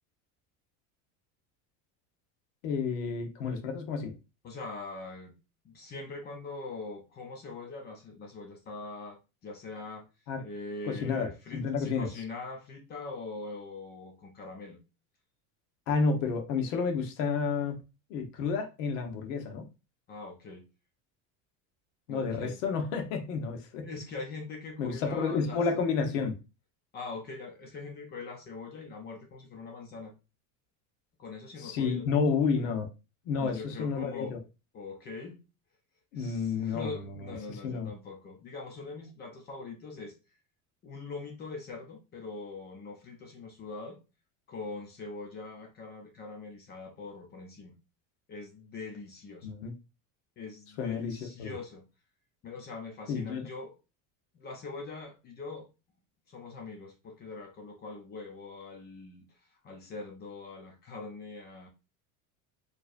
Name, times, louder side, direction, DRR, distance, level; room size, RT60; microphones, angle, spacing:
voice 1, 2.6-4.1 10.3-10.4 10.9-12.1 15.9-17.8 18.1-19.7 22.1-23.9 24.8-26.4 31.6-32.9 33.2-34.4 36.1-37.9 49.4-49.7 50.8-51.5 53.1-53.5, left 5 dB, 70° left, 1.2 m, -31 dB
voice 2, 4.4-5.3 5.6-10.1 10.4-14.8 20.1-20.6 22.1-22.6 23.8-25.6 26.9-30.1 31.2-32.0 33.4-34.4 34.7-35.4 36.1-40.1 40.8-44.0 44.5-47.8 48.3-49.5 50.4-51.8 52.4-53.7 54.3-55.7 56.3-59.2 59.6-61.7, left 3 dB, 25° left, 0.7 m, -42 dB
4.6 x 3.2 x 2.6 m
cardioid pair, 170°, 40 cm